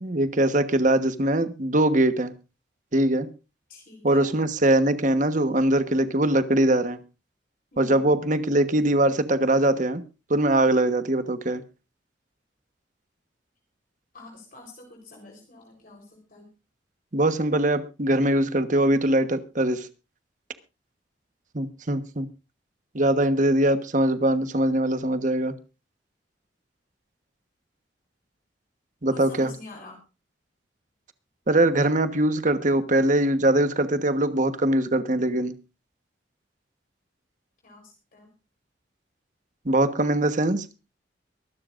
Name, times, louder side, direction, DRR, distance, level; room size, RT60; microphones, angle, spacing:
voice 1, 0.0-2.3 2.9-3.3 4.0-7.0 7.8-10.0 10.3-11.6 17.1-19.9 21.5-22.3 22.9-25.5 29.0-29.5 31.5-35.5 39.6-40.7, right 1 dB, 45° right, 1.2 m, -22 dB
voice 2, 3.7-4.4 7.7-8.1 14.1-16.5 29.1-30.0 37.6-38.3, left 2 dB, 50° left, 4.0 m, -46 dB
23.5 x 12.5 x 2.6 m
head